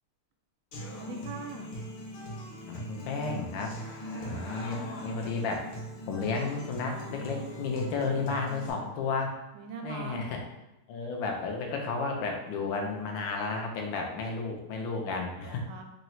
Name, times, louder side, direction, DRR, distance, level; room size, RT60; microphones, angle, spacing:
Human voice / Acoustic guitar, 0.7-8.7, equal, 90° left, 1.8 m, -40 dB
voice 1, 1.0-1.7 4.1-4.5 9.5-10.3 15.4-15.8, right 5 dB, 90° right, 4 dB, 1.5 m, -42 dB
voice 2, 2.7-3.8 4.2-5.7 6.1-9.3 9.8-10.4 10.9-15.6, left 4 dB, 70° left, 1 dB, 1.4 m, -32 dB
4.0 x 2.3 x 4.2 m, 0.93 s
omnidirectional pair, 2.3 m